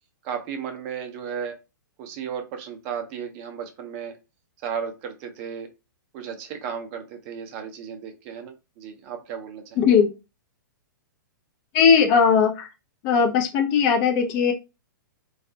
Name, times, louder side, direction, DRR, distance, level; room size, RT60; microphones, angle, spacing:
voice 1, 0.2-1.6 2.0-4.2 4.6-5.7 6.1-9.8, right 7 dB, 40° right, 5 dB, 0.5 m, -34 dB
voice 2, 9.8-10.1 11.7-12.7 13.0-14.5, left 6 dB, 35° left, 4 dB, 0.4 m, -18 dB
2.3 x 2.0 x 2.6 m, 0.27 s
hypercardioid pair, 125°, 11 cm